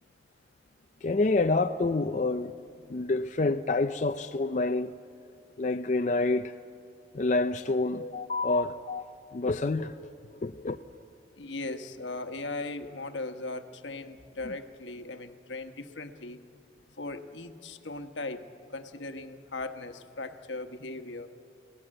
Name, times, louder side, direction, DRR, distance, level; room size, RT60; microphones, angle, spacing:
voice 1, 1.0-2.5 2.9-4.9 5.6-6.5 7.1-9.0 9.3-10.1 10.4-10.8 14.4-14.5, left 3 dB, 40° left, 0.5 m, -27 dB
voice 2, 11.4-16.4 17.0-18.4 18.7-21.3, left 2 dB, 85° left, 1.2 m, -38 dB
29.5 x 18.0 x 7.7 m
head